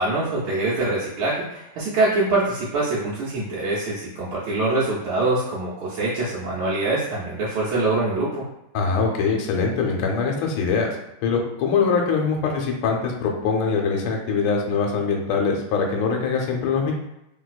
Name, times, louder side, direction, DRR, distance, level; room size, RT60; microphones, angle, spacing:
voice 1, 0.0-8.4, right 2 dB, 75° right, -8 dB, 1.4 m, -24 dB
voice 2, 8.7-10.9 11.2-16.9, left 5 dB, 80° left, 1 dB, 1.4 m, -23 dB
3.2 x 2.7 x 2.3 m, 0.88 s
omnidirectional pair, 2.3 m